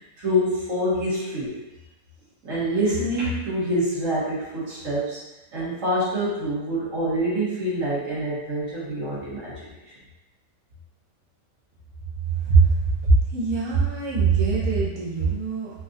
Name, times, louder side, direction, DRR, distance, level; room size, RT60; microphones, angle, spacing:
voice 1, 0.2-1.5 2.4-5.2 5.5-9.8, equal, 70° right, -9 dB, 1.6 m, -26 dB
voice 2, 13.0-15.7, right 4 dB, 35° right, -5 dB, 0.4 m, -21 dB
4.0 x 2.4 x 2.6 m, 1.0 s
omnidirectional pair, 1.5 m